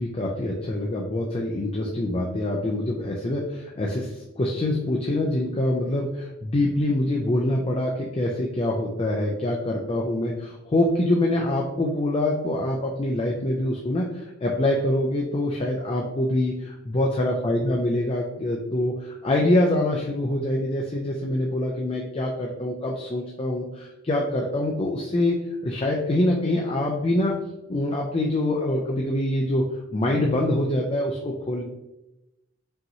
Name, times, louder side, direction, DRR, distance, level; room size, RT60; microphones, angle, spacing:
voice 1, 0.0-25.4 25.6-27.3 27.7-29.6 29.9-31.6, left 1 dB, 30° left, -1 dB, 0.4 m, -25 dB
5.4 x 3.0 x 2.7 m, 0.94 s
head